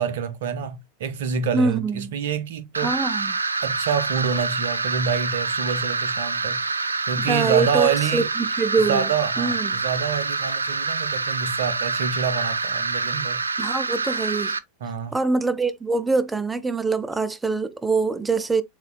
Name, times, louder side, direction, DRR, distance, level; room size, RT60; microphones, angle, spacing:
voice 1, 0.0-2.9 3.6-6.8 7.1-8.3 8.9-13.4 14.8-15.2, right 7 dB, 60° right, 0.7 m, -27 dB
voice 2, 1.5-2.1 2.8-3.4 7.3-9.8 13.6-14.6 15.1-18.6, right 4 dB, 10° right, 0.5 m, -24 dB
sound 1, 2.7-14.6, right 4 dB, 80° right, 0.3 m, -26 dB
7.1 x 2.7 x 2.2 m
figure-of-eight pair, 85°, 0 cm